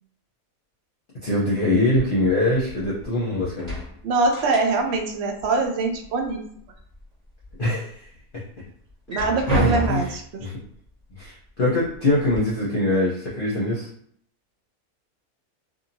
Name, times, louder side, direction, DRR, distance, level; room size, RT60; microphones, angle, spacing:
voice 1, 1.2-3.8 7.6-8.1 8.3-8.4 9.5-10.1 10.4-10.6 11.2-13.9, left 1 dB, 45° left, -7 dB, 0.8 m, -23 dB
sound 1, 1.9-3.2 3.5-5.1 5.3-6.3 6.8-7.5 8.0-8.1 8.9-10.3 11.2-11.3 11.8-12.4, left 1 dB, 30° right, 1.2 m, -32 dB
voice 2, 4.0-6.4 9.1-10.5, right 3 dB, 65° right, 3 dB, 0.6 m, -23 dB
2.8 x 2.6 x 2.6 m, 0.65 s
omnidirectional pair, 1.6 m